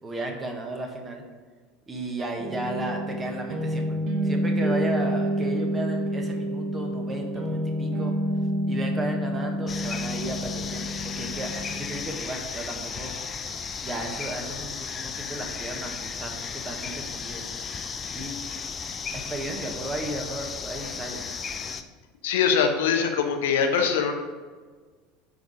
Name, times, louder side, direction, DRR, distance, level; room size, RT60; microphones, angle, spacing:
voice 1, 0.0-1.2 1.9-8.1 8.7-13.1 13.8-17.5 18.1-18.4 19.3-21.2, right 1 dB, 20° right, 2 dB, 1.4 m, -34 dB
sound 1, 2.4-12.0, equal, 45° right, 1.5 m, -28 dB
sound 2, 9.7-21.8, left 6 dB, 25° left, 0.6 m, -35 dB
voice 2, 22.2-24.1, left 6 dB, 65° left, 4 dB, 0.8 m, -22 dB
9.5 x 4.0 x 5.0 m, 1.5 s
figure-of-eight pair, 75°, 0 cm